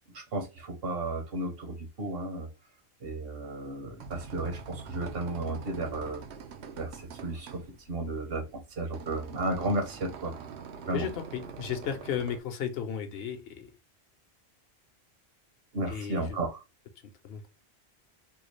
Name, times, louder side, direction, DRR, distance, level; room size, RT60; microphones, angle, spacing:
voice 1, 0.1-2.5 3.0-6.2 6.8-7.6 7.9-10.3 10.8-11.0 15.7-16.6, right 2 dB, 65° right, 1.0 m, -33 dB
sound 1, 3.7-12.4, right 6 dB, 90° right, 0.9 m, -45 dB
voice 2, 10.9-13.7 15.9-16.4 17.2-17.5, left 8 dB, 70° left, 0.8 m, -34 dB
3.6 x 2.3 x 3.1 m
omnidirectional pair, 1.1 m